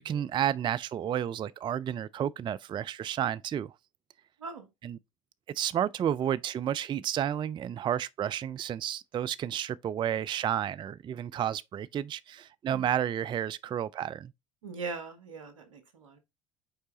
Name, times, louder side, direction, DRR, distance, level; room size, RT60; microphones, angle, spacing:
voice 1, 0.0-3.7 4.8-5.0 5.5-14.3, right 10 dB, 30° right, 0.3 m, -31 dB
voice 2, 14.6-16.2, right 4 dB, 85° right, 1.3 m, -41 dB
5.5 x 4.6 x 3.9 m
hypercardioid pair, 60°, 16 cm